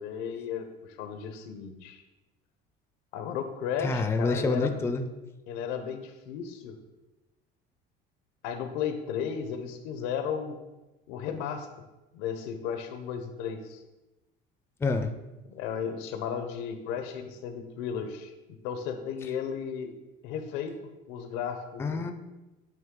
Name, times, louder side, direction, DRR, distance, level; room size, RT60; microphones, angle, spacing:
voice 1, 0.0-2.0 3.1-4.7 5.5-6.8 8.4-10.6 11.1-11.7 12.1-13.8 15.4-19.9 20.2-20.7 21.1-22.0, left 7 dB, 90° left, 7 dB, 0.7 m, -34 dB
voice 2, 3.8-5.0 14.8-15.1 21.8-22.1, left 3 dB, 10° left, 7 dB, 0.4 m, -27 dB
8.8 x 3.1 x 3.6 m, 1.1 s
cardioid pair, 125°, 20 cm